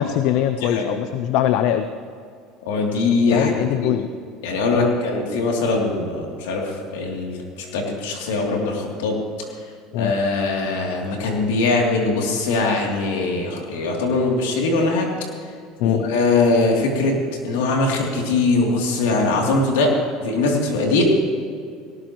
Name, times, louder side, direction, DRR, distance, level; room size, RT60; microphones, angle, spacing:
voice 1, 0.0-1.9 3.3-4.1 4.7-4.9 9.9-10.1 15.8-16.0, left 11 dB, 65° left, 10 dB, 0.6 m, -21 dB
voice 2, 0.6-0.9 2.6-3.9 4.4-9.2 9.9-15.1 15.8-17.1 17.4-19.9 20.2-21.0, left 3 dB, 85° left, 0 dB, 3.0 m, -21 dB
18.5 x 18.0 x 3.1 m, 2.2 s
supercardioid pair, 100°, 0 cm